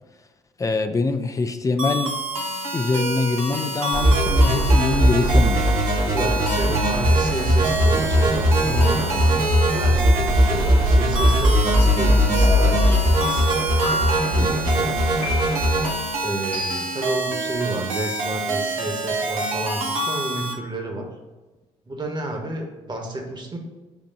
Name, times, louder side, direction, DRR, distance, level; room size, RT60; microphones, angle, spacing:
voice 1, 0.6-2.1 2.7-5.7 14.4-14.5, left 3 dB, 20° left, 7 dB, 0.5 m, -24 dB
sound 1, 1.8-20.5, right 2 dB, 75° right, 0.7 m, -28 dB
sound 2, 3.9-15.9, equal, 55° right, 1.4 m, -19 dB
voice 2, 6.1-13.5 14.3-15.0 16.2-21.1 21.9-23.6, right 2 dB, 25° right, 2 dB, 1.3 m, -31 dB
sound 3, 12.4-13.0 13.8-14.4 15.2-15.8 16.5-17.1, right 1 dB, 75° left, 1.6 m, -29 dB
7.2 x 2.6 x 5.4 m, 1.2 s
figure-of-eight pair, 45°, 18 cm